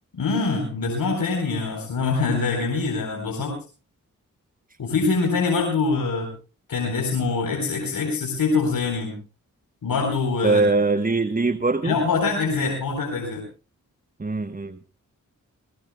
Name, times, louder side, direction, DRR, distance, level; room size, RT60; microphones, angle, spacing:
voice 1, 0.1-3.6 4.8-6.3 6.7-9.2 9.8-10.7 11.8-13.4, left 4 dB, 80° left, 2 dB, 4.1 m, -24 dB
voice 2, 10.4-12.0 14.2-14.8, right 3 dB, 25° right, 11 dB, 1.2 m, -22 dB
21.0 x 20.0 x 2.3 m, 0.34 s
cardioid pair, 45°, 34 cm